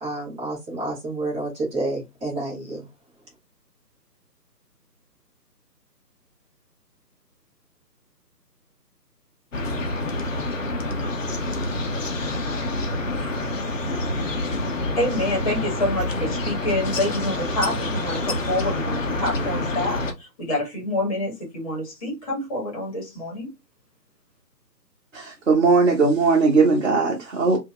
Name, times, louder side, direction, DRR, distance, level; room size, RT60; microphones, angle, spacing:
voice 1, 0.0-2.9, right 2 dB, 10° right, 1.8 m, -29 dB
sound 1, 9.5-20.1, left 2 dB, 50° left, 0.9 m, -27 dB
voice 2, 15.0-23.5, left 1 dB, 20° left, 1.7 m, -27 dB
voice 3, 25.1-27.6, right 4 dB, 50° right, 1.3 m, -19 dB
4.2 x 2.8 x 2.2 m
figure-of-eight pair, 150°, 50 cm